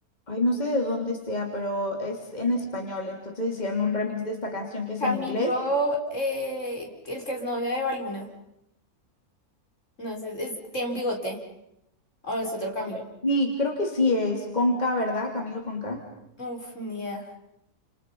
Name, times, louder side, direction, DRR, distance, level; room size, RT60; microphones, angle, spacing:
voice 1, 0.3-5.5 13.2-16.0, left 2 dB, 30° left, 1 dB, 3.3 m, -27 dB
voice 2, 5.0-8.3 10.0-11.4 12.2-13.0 16.4-17.2, equal, 55° left, 1 dB, 5.1 m, -30 dB
30.0 x 28.5 x 5.6 m, 0.81 s
omnidirectional pair, 1.6 m